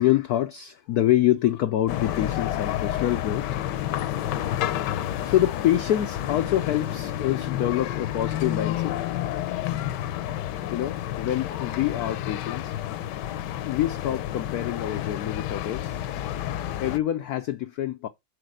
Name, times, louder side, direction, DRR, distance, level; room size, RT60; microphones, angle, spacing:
voice 1, 0.0-4.2 5.0-9.0 10.7-12.8 13.6-16.0 16.8-18.1, left 13 dB, 85° left, 0.8 m, -26 dB
sound 1, 1.9-17.0, left 12 dB, 70° left, 1.1 m, -30 dB
6.7 x 4.3 x 6.3 m
omnidirectional pair, 2.3 m